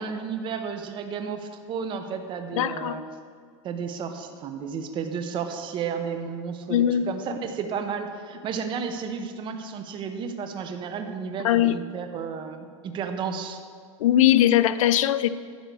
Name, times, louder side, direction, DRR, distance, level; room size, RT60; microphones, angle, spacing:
voice 1, 0.0-3.0 3.6-13.6, right 6 dB, 30° right, 7 dB, 0.8 m, -32 dB
voice 2, 2.5-3.0 6.7-7.1 11.4-11.8 14.0-15.3, left 12 dB, 85° left, 14 dB, 0.5 m, -20 dB
10.5 x 6.1 x 6.8 m, 2.1 s
supercardioid pair, 135°, 17 cm